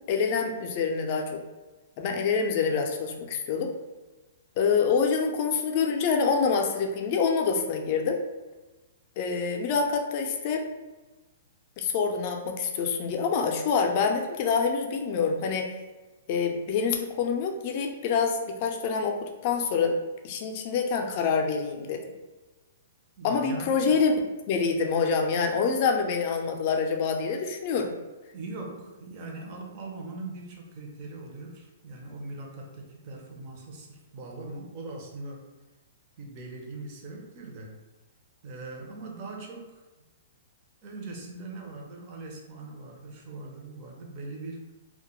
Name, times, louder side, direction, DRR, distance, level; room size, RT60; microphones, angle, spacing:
voice 1, 0.1-1.4 2.0-3.7 4.6-8.2 9.2-10.6 11.8-15.7 16.3-20.0 20.2-22.0 23.2-24.1 24.5-27.9, left 5 dB, 40° left, 3 dB, 0.4 m, -26 dB
voice 2, 23.2-24.0 28.3-35.5 36.2-37.8 38.4-40.1 40.8-44.7, right 2 dB, 40° right, 0 dB, 0.6 m, -41 dB
2.2 x 2.1 x 2.9 m, 1.2 s
hypercardioid pair, 145°, 0 cm